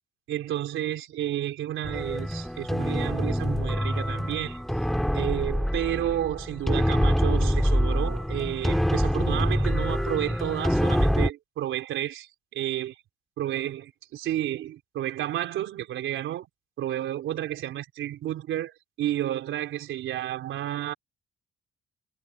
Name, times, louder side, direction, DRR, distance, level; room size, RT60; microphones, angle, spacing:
voice 1, 0.3-4.6 5.1-13.0 13.4-16.5 16.8-20.9, right 12 dB, 80° right, 3.8 m, -31 dB
sound 1, 1.8-11.3, equal, ahead, 2.1 m, -25 dB
cardioid pair, 90°, 20 cm